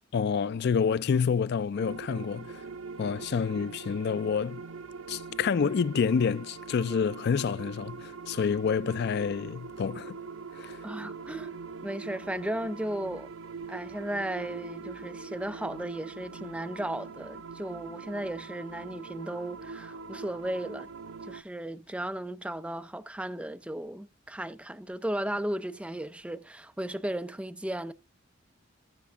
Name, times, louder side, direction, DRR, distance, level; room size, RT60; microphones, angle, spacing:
voice 1, 0.1-2.6 3.0-4.6 5.1-10.2 10.5-10.9, left 6 dB, 55° left, 0.4 m, -28 dB
sound 1, 1.8-21.4, right 4 dB, 85° right, 0.5 m, -43 dB
voice 2, 10.8-11.5 11.8-13.3 13.7-20.9 21.3-27.9, right 1 dB, 5° right, 0.5 m, -35 dB
14.5 x 5.8 x 3.6 m
head